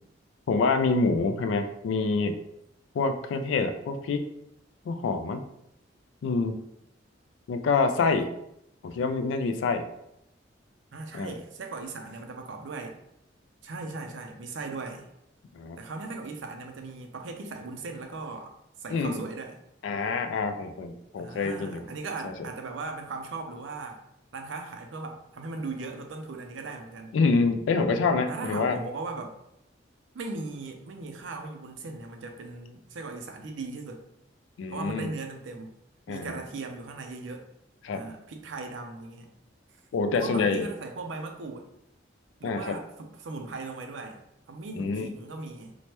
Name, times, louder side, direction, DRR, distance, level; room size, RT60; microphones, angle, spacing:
voice 1, 0.5-2.4 2.9-4.3 4.9-5.4 6.2-6.6 7.5-8.3 8.8-9.8 11.1-11.3 15.5-15.8 18.9-19.2 19.8-21.8 22.2-22.3 27.1-28.8 34.6-35.1 36.1-36.4 37.8-38.0 39.9-40.7 42.4-42.8 44.8-45.1, left 4 dB, 75° left, 7 dB, 0.3 m, -26 dB
voice 2, 10.9-13.0 13.6-15.1 15.8-18.5 18.8-19.6 21.2-24.0 24.3-27.2 28.3-29.4 30.1-34.0 34.7-35.8 36.1-37.4 37.9-39.3 40.1-41.7 42.4-44.2 44.5-45.7, right 3 dB, 70° right, 4 dB, 0.5 m, -38 dB
3.1 x 2.1 x 2.9 m, 0.79 s
head